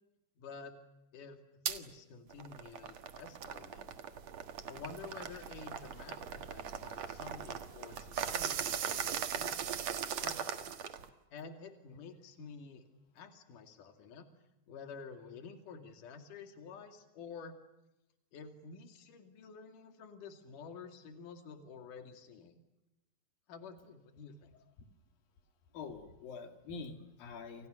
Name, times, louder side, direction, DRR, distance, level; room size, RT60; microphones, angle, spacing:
voice 1, 0.4-0.8 1.1-1.4 1.7-3.9 4.6-9.8 10.2-10.7 11.3-12.9 13.1-14.3 14.7-17.5 18.3-22.6 23.5-24.5, left 5 dB, 65° left, 6 dB, 3.8 m, -50 dB
sound 1, 1.7-1.8 2.3-11.1, right 8 dB, 60° right, 2.5 m, -39 dB
voice 2, 25.7-27.7, left 5 dB, 90° left, 6 dB, 4.1 m, -45 dB
29.5 x 29.0 x 6.6 m, 0.94 s
omnidirectional pair, 4.0 m